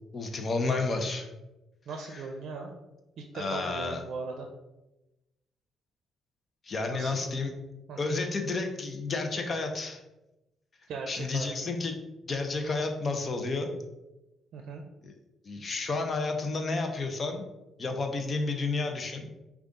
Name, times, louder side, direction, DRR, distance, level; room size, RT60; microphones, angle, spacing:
voice 1, 0.1-1.3 2.1-2.2 3.3-4.0 6.6-7.5 8.0-10.0 11.1-12.0 12.3-13.7 15.0-15.1 15.4-17.4 17.8-19.3, left 3 dB, 40° left, 5 dB, 0.7 m, -31 dB
voice 2, 1.9-2.7 3.2-4.5 6.9-7.3 7.9-8.1 10.9-11.8 14.5-14.8, right 4 dB, 70° right, 2 dB, 0.5 m, -39 dB
5.2 x 2.4 x 3.7 m, 0.98 s
cardioid pair, 90°, 0 cm